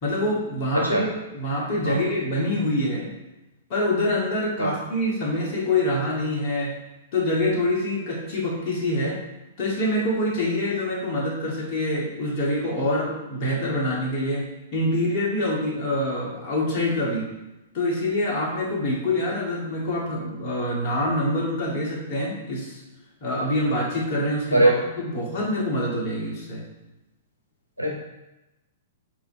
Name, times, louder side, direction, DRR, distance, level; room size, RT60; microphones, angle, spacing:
voice 1, 0.0-3.1 3.7-6.7 7.1-9.2 9.6-14.4 14.7-17.3 17.7-22.8 23.2-26.6, left 1 dB, 40° left, -3 dB, 1.9 m, -25 dB
voice 2, 0.9-1.0 1.9-2.0 4.6-4.7 24.5-24.7 27.8-27.9, right 2 dB, 85° left, -1 dB, 1.1 m, -20 dB
8.1 x 3.2 x 4.6 m, 1.0 s
figure-of-eight pair, 105°, 0 cm